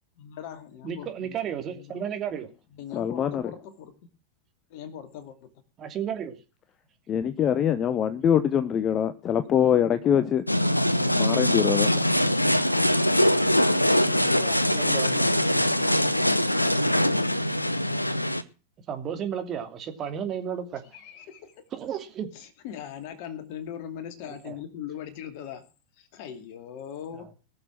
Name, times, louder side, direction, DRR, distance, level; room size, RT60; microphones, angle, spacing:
voice 1, 0.2-1.3 1.7-2.0 2.7-3.9 4.7-5.5 9.4-10.2 13.8-16.3 20.7-21.6 22.3-25.6 26.0-27.3, left 9 dB, 45° left, 2.4 m, -41 dB
voice 2, 0.8-2.5 5.8-6.4 10.1-10.2 11.0-11.6 14.8-15.2 18.9-20.8 21.7-22.3 24.4-24.6, right 8 dB, 30° right, 2.8 m, -33 dB
voice 3, 2.9-3.4 7.1-10.4 11.2-12.0, left 9 dB, 30° left, 0.8 m, -23 dB
sound 1, 10.5-18.4, left 1 dB, 85° left, 0.8 m, -23 dB
20.0 x 7.0 x 6.3 m
figure-of-eight pair, 90°, 0 cm